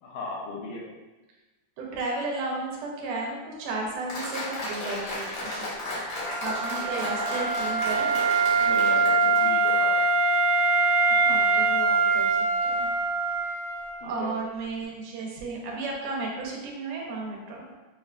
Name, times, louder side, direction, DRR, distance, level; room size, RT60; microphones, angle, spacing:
voice 1, 0.0-0.9 6.9-7.1 8.6-10.1 14.0-14.3, left 3 dB, 80° left, -2 dB, 2.0 m, -37 dB
voice 2, 1.8-6.0 6.4-8.2 11.1-12.9 14.0-17.7, right 3 dB, 85° right, -2 dB, 2.3 m, -34 dB
Applause, 4.1-10.0, left 1 dB, 55° left, 1.5 m, -34 dB
Wind instrument woodwind instrument, 6.2-14.0, right 3 dB, 50° right, 0.9 m, -23 dB
6.8 x 2.4 x 2.2 m, 1.1 s
omnidirectional pair, 3.5 m